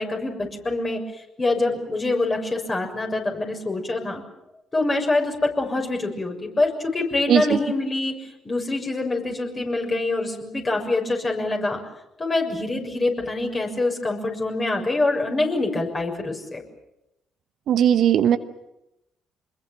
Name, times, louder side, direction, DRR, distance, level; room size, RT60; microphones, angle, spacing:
voice 1, 0.0-4.2 4.7-11.8 12.2-16.6, left 2 dB, 30° left, 2 dB, 6.6 m, -25 dB
voice 2, 7.3-7.6 17.7-18.4, right 9 dB, 60° right, 11 dB, 1.1 m, -18 dB
26.0 x 21.5 x 7.5 m, 0.88 s
hypercardioid pair, 45°, 0 cm